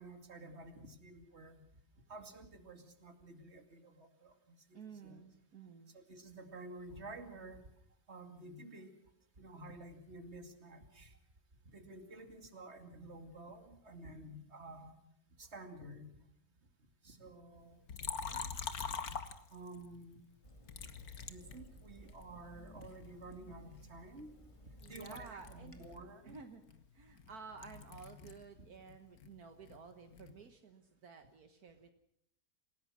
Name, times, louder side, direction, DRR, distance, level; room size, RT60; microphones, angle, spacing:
voice 1, 0.0-1.7 2.1-5.2 5.9-7.6 8.1-8.9 9.4-11.2 11.7-15.0 15.4-16.2 17.0-17.8 18.3-18.4 19.5-20.2 21.3-24.3 24.9-26.4 28.6-28.7, right 2 dB, 45° right, 6 dB, 2.8 m, -51 dB
voice 2, 4.7-6.0 24.8-25.9 26.2-26.6 26.9-31.9, right 5 dB, 70° right, 7 dB, 1.9 m, -53 dB
Liquid, 17.9-19.9 20.7-22.2 22.8-24.5 24.8-28.5 28.8-30.4, left 6 dB, 70° left, 1.9 m, -45 dB
Water tap faucet / Sink (filling or washing), 20.4-25.9, equal, 20° left, 2.2 m, -58 dB
27.5 x 17.0 x 6.2 m, 0.72 s
omnidirectional pair, 1.6 m